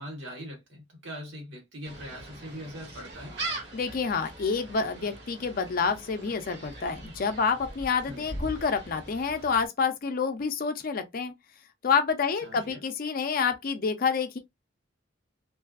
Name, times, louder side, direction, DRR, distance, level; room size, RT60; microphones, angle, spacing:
voice 1, 0.0-3.4 8.1-8.2 12.4-12.8, equal, 80° right, 1.3 m, -41 dB
Gull seagull, 1.8-9.7, right 2 dB, 60° right, 1.0 m, -41 dB
voice 2, 3.7-11.3 11.8-14.4, left 5 dB, 50° left, 0.5 m, -28 dB
2.6 x 2.4 x 2.4 m
head